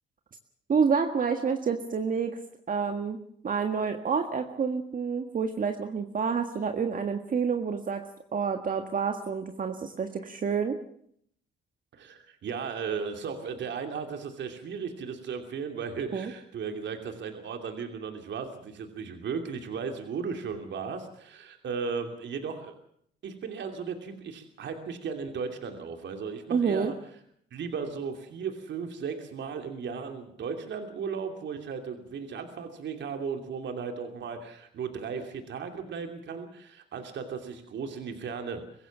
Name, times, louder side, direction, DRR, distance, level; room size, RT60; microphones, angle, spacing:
voice 1, 0.7-2.4 2.7-3.2 3.4-8.1 8.3-10.8 16.1-16.3 26.5-26.9, right 6 dB, 45° right, 5 dB, 1.7 m, -28 dB
voice 2, 11.9-22.7 23.2-27.0 27.5-38.9, right 6 dB, 65° right, 5 dB, 2.9 m, -36 dB
24.0 x 15.5 x 7.3 m, 0.67 s
cardioid pair, 90°, 20 cm